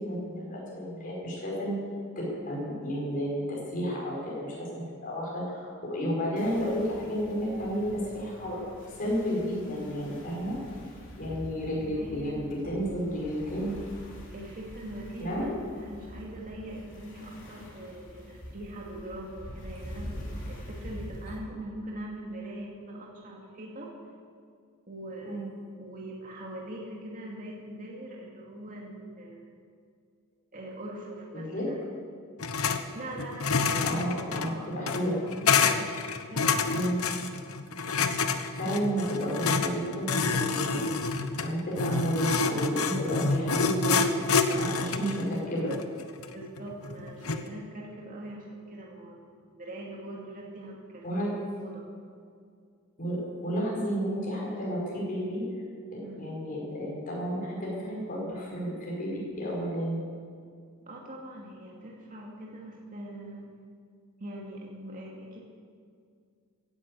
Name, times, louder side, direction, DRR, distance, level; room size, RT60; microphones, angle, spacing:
voice 1, 0.0-1.8 2.2-8.6 9.0-10.6 11.2-13.7 15.2-15.5 25.2-25.5 31.3-31.7 33.8-35.2 36.7-37.0 38.5-40.8 41.4-45.7 51.0-51.4 53.0-55.5 55.9-60.0, equal, 40° left, -4 dB, 5.3 m, -32 dB
sound 1, 6.4-21.4, equal, 60° left, 3.6 m, -45 dB
voice 2, 12.0-12.4 14.3-15.5 15.8-23.9 24.9-25.5 25.8-29.6 30.5-31.8 32.9-34.9 35.4-36.6 46.3-51.3 51.5-51.9 56.0-56.2 60.8-63.5 64.2-65.4, right 1 dB, 40° right, -2 dB, 2.4 m, -42 dB
sound 2, 32.4-32.8 33.1-47.5, left 4 dB, 90° left, 1.1 m, -28 dB
16.0 x 10.5 x 8.5 m, 2.2 s
head